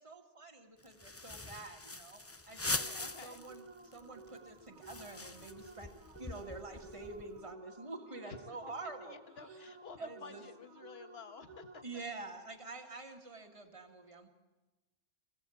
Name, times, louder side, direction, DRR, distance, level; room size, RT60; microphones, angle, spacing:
voice 1, 0.0-2.2 2.5-5.9 6.2-9.1 10.0-10.4 11.8-14.3, right 3 dB, 25° right, 3 dB, 2.1 m, -47 dB
sound 1, 0.8-3.6 3.9-4.0 4.3-7.4, left 2 dB, 15° left, 0.6 m, -42 dB
voice 2, 2.5-3.4 8.2-8.4 9.0-12.0, left 5 dB, 55° left, 10 dB, 1.6 m, -52 dB
sound 2, 2.8-12.2, right 3 dB, 65° right, 1.8 m, -55 dB
26.0 x 20.0 x 8.6 m, 1.1 s
omnidirectional pair, 1.3 m